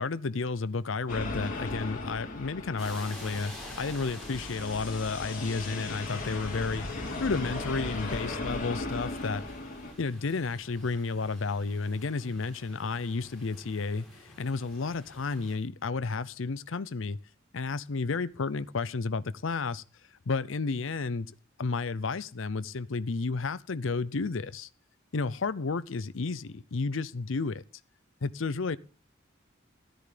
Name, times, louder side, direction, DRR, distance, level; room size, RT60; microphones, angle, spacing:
voice 1, 0.0-3.5 3.8-6.9 7.2-9.4 10.0-17.2 17.5-19.8 20.3-21.3 21.6-24.7 25.1-27.6 28.2-28.8, left 4 dB, 70° left, 0.6 m, -32 dB
sound 1, 1.1-9.9, left 2 dB, 45° left, 3.3 m, -37 dB
sound 2, 2.8-15.6, left 1 dB, ahead, 6.3 m, -49 dB
13.5 x 10.0 x 5.0 m
head